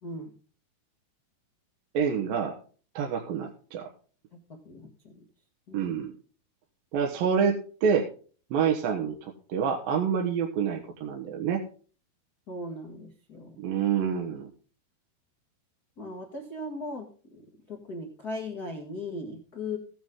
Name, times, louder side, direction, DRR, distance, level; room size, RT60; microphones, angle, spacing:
voice 1, 0.0-0.3 4.5-5.2 5.7-5.9 12.5-13.6 16.0-19.8, left 2 dB, 50° left, 1 dB, 1.1 m, -38 dB
voice 2, 1.9-2.5 3.0-3.8 5.7-6.1 6.9-8.1 8.5-11.6 13.6-14.5, right 7 dB, 70° right, 1 dB, 2.9 m, -27 dB
15.5 x 9.4 x 3.7 m, 0.40 s
omnidirectional pair, 4.5 m